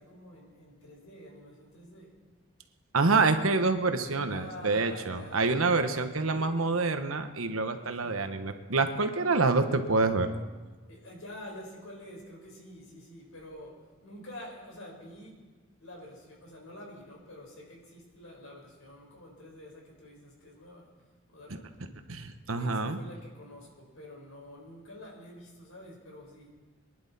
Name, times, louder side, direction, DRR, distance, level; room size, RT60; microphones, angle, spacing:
voice 1, 0.0-2.2 4.2-5.5 6.2-6.8 8.0-8.3 10.9-15.4 15.8-20.9 21.3-21.6 22.6-26.5, left 1 dB, 90° left, -1 dB, 4.3 m, -48 dB
voice 2, 2.9-10.3 22.1-23.0, right 3 dB, 90° right, 8 dB, 1.1 m, -27 dB
23.5 x 11.0 x 4.1 m, 1.3 s
head